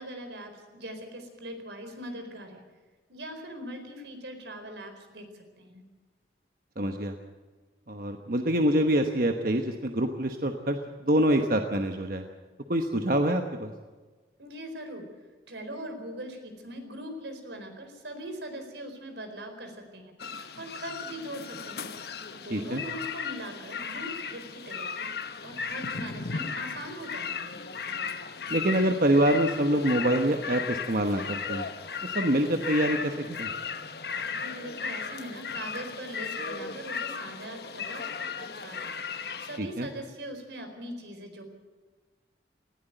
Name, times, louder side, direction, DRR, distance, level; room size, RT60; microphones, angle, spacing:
voice 1, 0.0-2.6 3.1-5.8 14.4-15.0 15.5-21.9 22.3-25.1 25.4-27.5 34.3-38.9 39.2-41.4, right 1 dB, 85° right, 5 dB, 4.5 m, -41 dB
voice 2, 6.8-7.1 7.9-10.8 11.1-12.2 12.7-13.7 22.5-22.8 28.5-31.7 32.1-33.5 39.6-39.9, right 1 dB, 50° right, 5 dB, 1.1 m, -25 dB
sound 1, 20.2-39.6, left 6 dB, 60° left, 1.1 m, -36 dB
19.0 x 15.5 x 9.1 m, 1.4 s
head